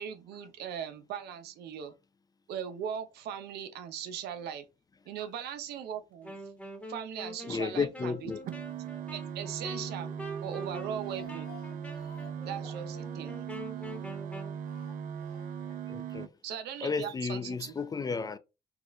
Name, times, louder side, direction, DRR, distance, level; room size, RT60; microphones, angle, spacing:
voice 1, 0.0-1.9 2.5-4.6 5.1-6.3 6.9-8.3 9.1-10.1 10.4-11.5 12.5-13.4 16.4-17.7, right 8 dB, 75° right, 0.8 m, -39 dB
Wind instrument woodwind instrument, 6.2-14.6, equal, 5° left, 1.2 m, -45 dB
voice 2, 7.5-8.4 15.9-16.3 16.8-18.4, left 5 dB, 20° left, 0.4 m, -33 dB
sound 1, 8.3-16.3, right 8 dB, 55° right, 0.4 m, -39 dB
Speech, 10.8-14.2 14.7-15.8 16.1-16.2 16.5-16.6, left 7 dB, 60° left, 1.3 m, -55 dB
4.7 x 2.5 x 3.1 m
cardioid pair, 110°, 17 cm